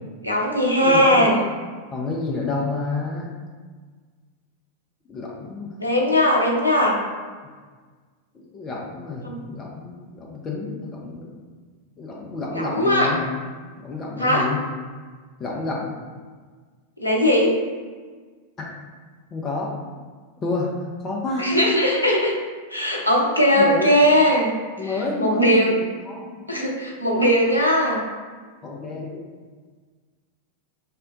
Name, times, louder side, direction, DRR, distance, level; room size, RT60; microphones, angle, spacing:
voice 1, 0.2-1.4 5.8-7.0 9.2-9.4 12.5-13.1 14.2-14.5 17.0-17.6 21.4-22.4 22.7-24.5 24.8-25.7 26.5-28.0, equal, 85° left, -2 dB, 0.5 m, -19 dB
voice 2, 0.8-1.3 1.9-3.3 5.1-5.7 8.3-11.3 12.0-13.2 13.8-14.6 15.4-15.9 18.6-18.7 19.3-19.8 20.4-20.8 21.0-21.5 23.6-23.9 24.8-25.8 26.1-26.5 28.6-29.2, left 3 dB, 25° left, -2 dB, 0.6 m, -29 dB
3.6 x 2.2 x 3.7 m, 1.5 s
figure-of-eight pair, 90°, 0 cm